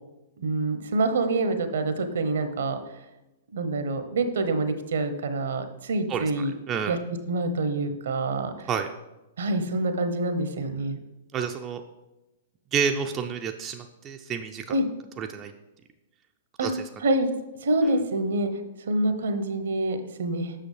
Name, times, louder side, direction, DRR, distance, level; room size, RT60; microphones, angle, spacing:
voice 1, 0.4-2.8 3.5-6.5 6.9-7.0 7.3-8.7 9.4-11.0 14.7-14.9 16.6-16.7 17.0-17.3 17.6-18.5 18.9-20.5, right 2 dB, 65° right, 9 dB, 0.8 m, -26 dB
voice 2, 11.3-11.8 12.7-14.7 15.2-15.5 16.6-16.7, right 7 dB, 25° right, 5 dB, 0.4 m, -29 dB
7.6 x 6.1 x 3.3 m, 0.98 s
figure-of-eight pair, 110°, 0 cm